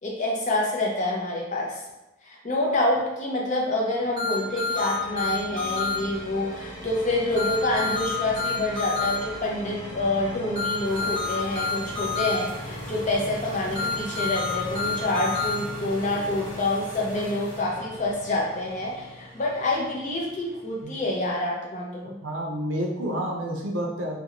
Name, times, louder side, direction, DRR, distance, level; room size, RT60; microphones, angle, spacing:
voice 1, 0.0-1.8 2.2-22.2, left 2 dB, 40° left, -3 dB, 0.5 m, -27 dB
sound 1, 3.6-21.3, left 1 dB, 80° left, 0.6 m, -40 dB
sound 2, 4.2-6.0 7.4-9.2 10.6-12.4 13.7-15.6, left 4 dB, 25° right, 0.7 m, -28 dB
sound 3, 10.8-17.6, equal, 25° left, 1.2 m, -46 dB
voice 2, 22.2-24.2, equal, 80° right, -1 dB, 0.5 m, -29 dB
2.4 x 2.1 x 2.9 m, 1.0 s
head